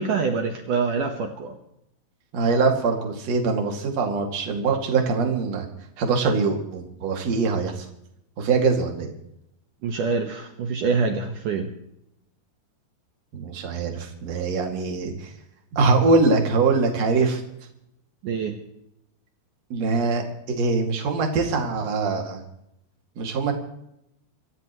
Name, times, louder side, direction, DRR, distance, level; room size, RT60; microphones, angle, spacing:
voice 1, 0.0-1.6 9.8-11.7 18.2-18.6, right 5 dB, 70° right, 4 dB, 2.1 m, -25 dB
voice 2, 2.3-5.7 6.0-7.8 8.4-9.1 13.3-15.3 15.7-17.4 19.7-22.4 23.2-23.5, right 4 dB, 45° right, 2 dB, 2.9 m, -23 dB
26.5 x 14.0 x 3.1 m, 0.79 s
omnidirectional pair, 5.2 m